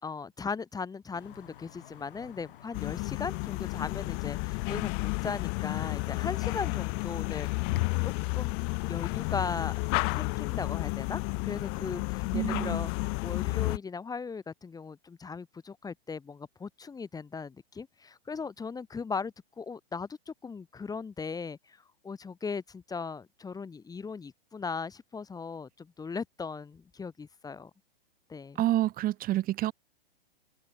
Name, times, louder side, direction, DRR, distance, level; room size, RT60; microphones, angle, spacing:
voice 1, 0.0-7.5 8.0-8.6 8.9-9.7 10.1-12.9 13.2-27.7 28.3-28.6, left 5 dB, 10° left, 3.3 m, -38 dB
sound 1, 1.1-10.6, left 12 dB, 60° left, 6.0 m, -48 dB
sound 2, 2.7-13.8, left 40 dB or more, 40° left, 2.1 m, -31 dB
voice 2, 12.3-12.9 28.5-29.7, right 14 dB, 30° right, 3.4 m, -28 dB
figure-of-eight pair, 110°, 31 cm